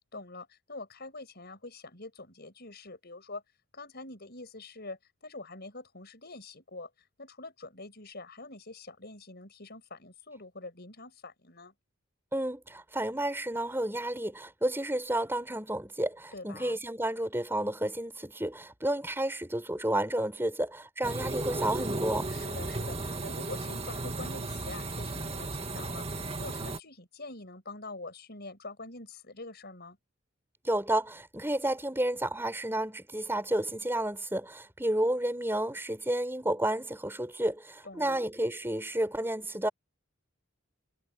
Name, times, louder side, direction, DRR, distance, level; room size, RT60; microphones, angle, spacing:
voice 1, 0.1-3.4 3.7-11.7 16.3-16.8 22.3-30.0 37.8-38.2, left 2 dB, 50° left, 6.9 m, -45 dB
voice 2, 12.3-22.3 30.6-39.7, right 1 dB, 10° right, 5.7 m, -31 dB
sound 1, 21.0-26.8, right 2 dB, 30° right, 1.8 m, -35 dB
head